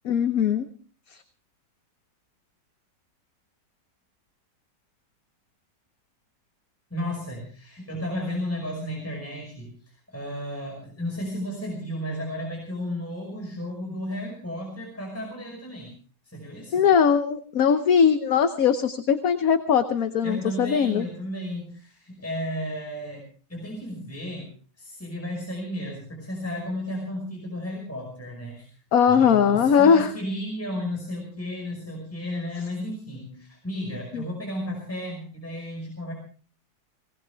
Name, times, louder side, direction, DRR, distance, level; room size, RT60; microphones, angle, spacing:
voice 1, 0.0-0.7 16.7-21.1 28.9-30.1 34.1-34.2, left 7 dB, 60° left, 9 dB, 1.3 m, -20 dB
voice 2, 6.9-15.9 16.2-16.9 20.2-23.2 23.5-24.5 24.8-28.7 29.1-36.1, equal, 10° left, -1 dB, 5.5 m, -33 dB
20.0 x 20.0 x 3.5 m, 0.40 s
omnidirectional pair, 1.8 m